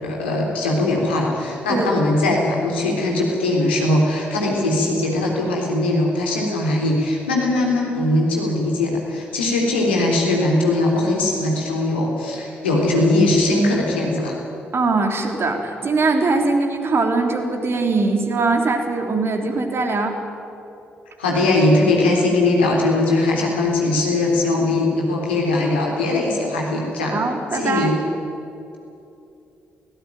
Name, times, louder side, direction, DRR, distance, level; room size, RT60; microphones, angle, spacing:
voice 1, 0.0-14.4 21.2-27.2 27.5-28.0, left 2 dB, 85° left, -1 dB, 3.6 m, -20 dB
voice 2, 14.7-20.2 27.1-27.9, right 3 dB, 45° right, 4 dB, 3.5 m, -21 dB
24.0 x 17.0 x 9.3 m, 2.7 s
figure-of-eight pair, 40°, 6 cm